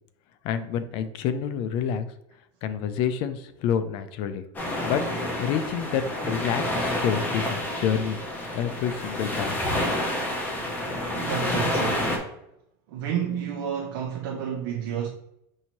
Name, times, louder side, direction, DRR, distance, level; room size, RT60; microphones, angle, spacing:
voice 1, 0.4-2.1 2.6-4.4 4.8-8.2 8.5-9.7, left 8 dB, 45° left, 0.4 m, -28 dB
sound 1, 4.5-12.2, left 1 dB, 15° left, 0.7 m, -29 dB
voice 2, 11.1-12.1 12.9-15.1, right 8 dB, 70° right, 0.6 m, -30 dB
5.6 x 2.7 x 3.0 m
supercardioid pair, 155°, 12 cm